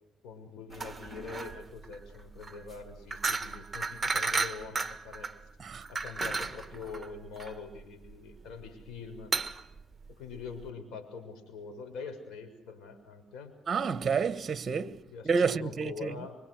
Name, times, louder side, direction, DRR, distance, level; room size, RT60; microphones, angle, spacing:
voice 1, 0.2-5.3 5.9-9.3 10.2-13.5 15.1-16.4, left 5 dB, 75° left, 6.5 m, -44 dB
sound 1, 0.7-10.7, right 4 dB, 20° right, 1.6 m, -35 dB
voice 2, 13.7-15.0 15.2-16.2, right 5 dB, 35° right, 1.3 m, -29 dB
26.5 x 24.5 x 6.5 m
cardioid pair, 90°, 0 cm